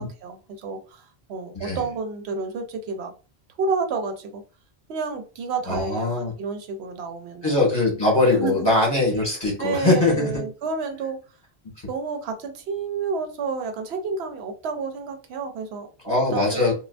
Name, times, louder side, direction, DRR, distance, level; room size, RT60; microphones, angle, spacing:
voice 1, 0.0-3.1 3.6-4.4 4.9-7.6 8.3-8.7 9.6-11.2 11.9-15.9 16.1-16.7, right 4 dB, 90° right, 6 dB, 0.9 m, -30 dB
voice 2, 5.6-6.3 7.4-10.4 16.0-16.7, left 2 dB, 25° left, -3 dB, 1.6 m, -21 dB
3.2 x 2.2 x 2.4 m, 0.35 s
omnidirectional pair, 1.1 m